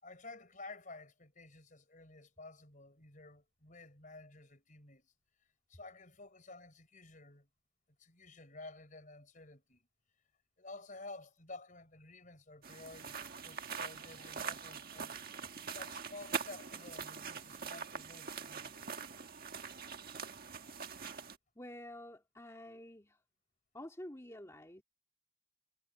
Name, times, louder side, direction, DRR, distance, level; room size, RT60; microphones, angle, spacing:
voice 1, 0.0-5.1 5.4-7.5 8.0-9.9 10.6-15.2 15.7-19.2, left 2 dB, 35° left, 5.0 m, -52 dB
sound 1, 12.6-21.4, right 6 dB, 45° right, 1.7 m, -43 dB
voice 2, 21.6-23.2 23.7-24.8, left 1 dB, 15° left, 2.3 m, -49 dB
head